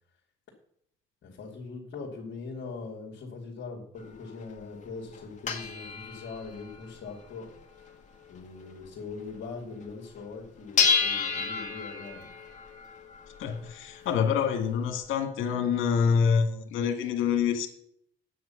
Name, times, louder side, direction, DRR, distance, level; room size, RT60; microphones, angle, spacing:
voice 1, 1.2-7.5 8.3-12.3, left 4 dB, 65° left, -3 dB, 2.6 m, -41 dB
sound 1, 4.0-9.5 9.8-9.9 10.2-15.1, left 5 dB, 35° left, 2.1 m, -32 dB
voice 2, 13.4-17.7, left 6 dB, 85° left, 6 dB, 1.9 m, -26 dB
9.4 x 8.7 x 5.8 m, 0.70 s
cardioid pair, 90°, 20 cm